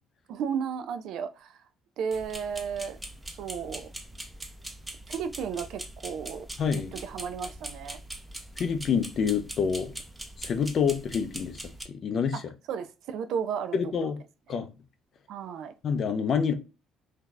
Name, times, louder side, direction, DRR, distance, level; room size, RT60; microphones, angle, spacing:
voice 1, 0.3-1.6 2.0-3.0 3.4-3.9 5.1-6.5 6.9-8.0 12.3-12.4 12.7-14.1 14.5-14.6 15.3-15.7, right 7 dB, 65° right, 0.4 m, -34 dB
sound 1, 2.1-11.8, right 1 dB, 10° right, 0.5 m, -42 dB
voice 2, 6.6-6.9 8.6-9.9 10.4-11.6 11.9-12.4 13.7-14.2 14.5-14.7 15.8-16.5, left 6 dB, 45° left, 0.5 m, -27 dB
2.7 x 2.3 x 3.7 m
cardioid pair, 125°, 0 cm